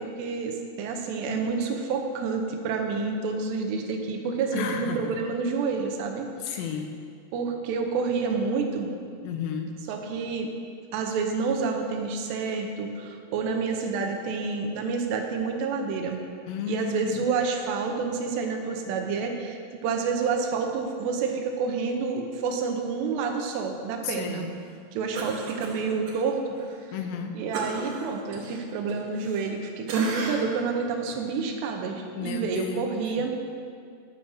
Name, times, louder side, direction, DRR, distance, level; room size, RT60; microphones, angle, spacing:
voice 1, 0.0-6.6 7.3-8.9 9.9-10.5 10.9-16.2 16.7-24.5 24.9-26.4 27.3-33.3, right 5 dB, 90° right, 3 dB, 3.1 m, -29 dB
voice 2, 4.5-5.2 6.4-7.0 9.2-9.8 16.5-17.3 24.0-24.5 26.9-27.4 32.2-33.2, left 7 dB, 90° left, 4 dB, 3.0 m, -33 dB
Cough, 25.1-26.2 26.6-26.7 27.5-29.6 29.9-30.6 31.1-31.2, right 3 dB, 70° right, 2.0 m, -33 dB
11.0 x 5.4 x 6.4 m, 2.3 s
omnidirectional pair, 4.8 m